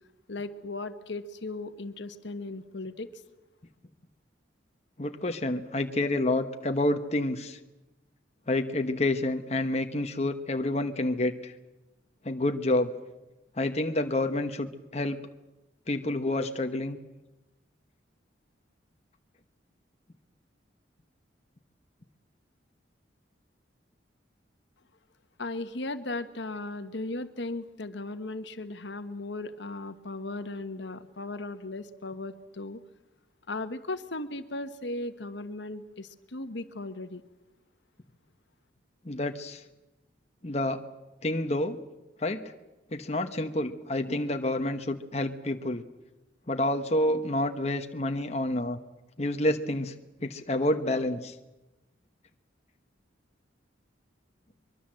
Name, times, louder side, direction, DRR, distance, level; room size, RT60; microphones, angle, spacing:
voice 1, 0.3-3.1 25.4-32.8 33.5-37.2, left 2 dB, 70° left, 10 dB, 1.4 m, -37 dB
voice 2, 5.0-7.6 8.5-11.5 12.2-12.9 13.6-15.2 15.9-17.0 39.0-39.6 40.4-40.8 41.2-41.8 42.2-42.4 42.9-45.8 46.5-48.8 49.2-49.9 50.2-51.3, left 1 dB, 35° left, 6 dB, 1.2 m, -28 dB
23.5 x 23.0 x 7.7 m, 1.0 s
head